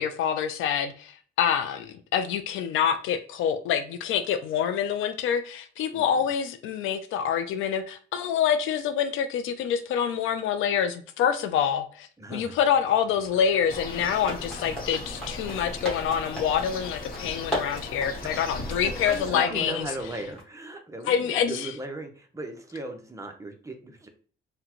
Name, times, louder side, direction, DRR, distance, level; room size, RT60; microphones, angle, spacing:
voice 1, 0.0-19.9 21.1-21.7, left 8 dB, 85° left, 0.4 m, -26 dB
voice 2, 5.9-6.3 12.2-12.6 18.2-18.5 18.8-18.9 19.2-24.1, right 2 dB, 15° right, 0.7 m, -38 dB
sound 1, 12.6-20.4, equal, 5° left, 1.5 m, -38 dB
sound 2, 13.7-19.3, left 2 dB, 45° left, 0.8 m, -38 dB
3.7 x 2.2 x 2.9 m
cardioid pair, 90°, 20 cm